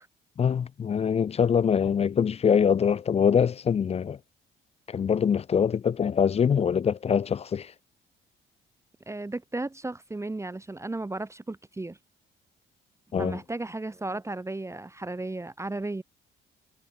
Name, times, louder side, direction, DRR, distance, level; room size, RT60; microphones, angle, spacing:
voice 1, 0.4-4.2 4.9-7.7 13.1-13.4, left 7 dB, 30° left, 0.4 m, -24 dB
voice 2, 9.1-12.0 13.2-16.0, right 2 dB, 15° right, 1.0 m, -34 dB
cardioid pair, 90°, 20 cm